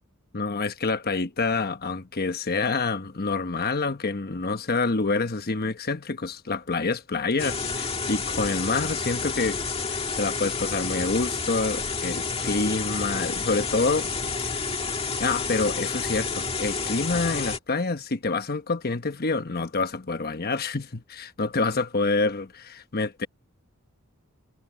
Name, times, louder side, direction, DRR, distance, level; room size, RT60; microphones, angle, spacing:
voice 1, 0.3-9.6 9.9-14.1 15.2-23.3, left 3 dB, 45° left, 1.2 m, -27 dB
sound 1, 7.4-17.6, left 4 dB, 25° left, 1.9 m, -30 dB
head